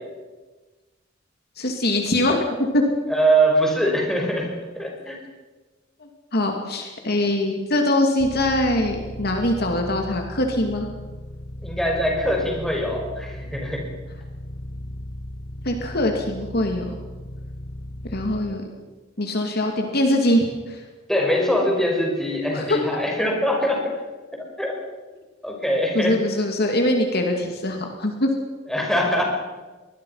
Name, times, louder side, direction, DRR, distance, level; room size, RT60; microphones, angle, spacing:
voice 1, 1.6-2.8 6.3-10.9 15.6-16.9 18.1-18.6 19.2-20.8 22.5-22.8 25.9-28.3, left 1 dB, 55° left, 3 dB, 2.6 m, -22 dB
voice 2, 3.1-5.2 11.6-13.8 21.1-23.8 24.6-24.7 25.4-26.2 28.7-29.2, right 1 dB, ahead, -1 dB, 5.5 m, -22 dB
sound 1, 8.2-18.4, left 1 dB, 90° left, 3.2 m, -36 dB
24.5 x 20.0 x 5.8 m, 1.3 s
head